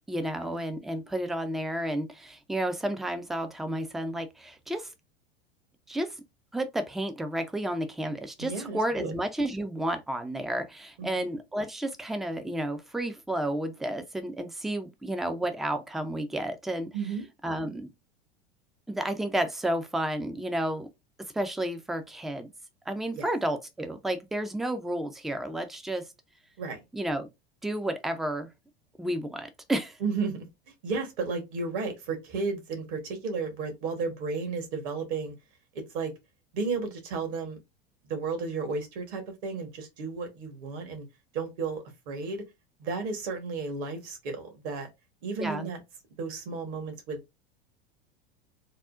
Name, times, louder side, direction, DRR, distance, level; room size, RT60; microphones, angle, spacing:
voice 1, 0.1-4.9 5.9-6.1 6.5-16.9 17.4-17.9 18.9-20.9 21.3-22.5 22.9-26.0 26.9-27.3 27.6-28.5 29.0-30.0 45.4-45.7, right 1 dB, ahead, 0.3 m, -31 dB
voice 2, 8.4-9.1 11.0-11.3 16.9-17.3 23.2-23.3 26.6-26.8 30.0-30.5 30.8-35.3 35.7-36.1 36.5-37.6 38.0-41.1 41.3-42.4 42.8-44.9 45.2-45.8 46.2-47.2, right 4 dB, 60° right, 1.2 m, -33 dB
3.6 x 2.0 x 2.4 m
hypercardioid pair, 85°, 30 cm